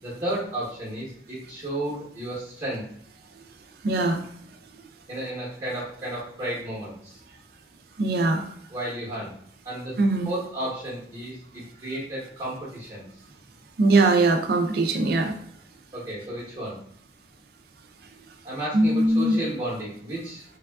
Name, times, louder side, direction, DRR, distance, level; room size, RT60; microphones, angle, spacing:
voice 1, 0.0-2.8 5.1-7.2 8.7-9.3 9.6-9.9 10.2-13.0 15.9-16.8 18.4-20.4, right 1 dB, 20° right, -8 dB, 0.8 m, -33 dB
voice 2, 3.8-4.3 8.0-8.5 10.0-10.3 13.8-15.3 18.7-19.4, right 2 dB, 60° right, 4 dB, 0.4 m, -21 dB
3.3 x 2.3 x 2.2 m, 0.66 s
head